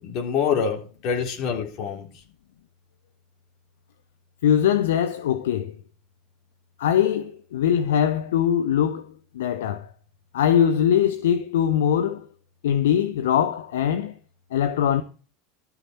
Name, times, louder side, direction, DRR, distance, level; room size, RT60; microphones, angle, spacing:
voice 1, 0.0-2.1, left 7 dB, 50° left, 3.6 m, -26 dB
voice 2, 4.4-5.8 6.8-9.1 9.3-9.9 10.3-12.3 12.6-14.2 14.5-15.0, left 9 dB, 70° left, 0.8 m, -22 dB
12.5 x 9.4 x 4.4 m
figure-of-eight pair, 80°, 0 cm